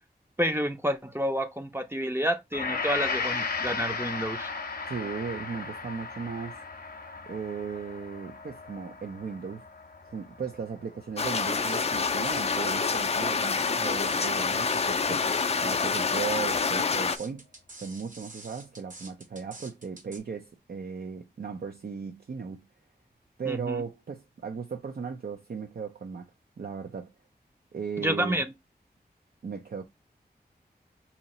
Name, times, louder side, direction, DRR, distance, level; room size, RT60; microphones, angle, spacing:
voice 1, 0.4-4.5 23.5-23.8 28.0-28.4, equal, 15° right, 0.5 m, -29 dB
Gong, 2.5-10.9 11.3-11.5, left 4 dB, 60° left, 0.7 m, -35 dB
voice 2, 4.9-6.6 7.3-9.6 10.0-15.3 15.6-17.5 17.8-22.6 23.4-26.3 26.6-27.1 27.7-28.4 29.4-29.8, right 5 dB, 65° right, 0.5 m, -36 dB
sound 1, 11.2-17.2, left 5 dB, 40° left, 0.4 m, -27 dB
sound 2, 11.6-20.2, right 2 dB, 50° right, 1.1 m, -47 dB
2.8 x 2.8 x 4.1 m
wide cardioid pair, 60°, 17 cm